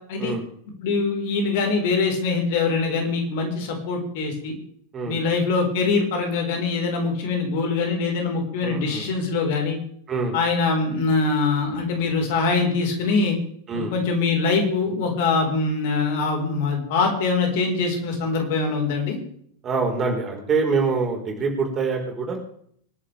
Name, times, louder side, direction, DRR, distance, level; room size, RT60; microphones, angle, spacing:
voice 1, 0.8-4.5 5.0-9.8 10.3-13.4 13.7-19.2, left 4 dB, 50° left, 2 dB, 4.5 m, -23 dB
voice 2, 8.6-9.1 10.1-10.3 13.7-13.9 19.6-22.4, right 4 dB, 25° right, 2 dB, 4.5 m, -25 dB
26.0 x 11.0 x 3.5 m, 0.64 s
figure-of-eight pair, 90°, 0 cm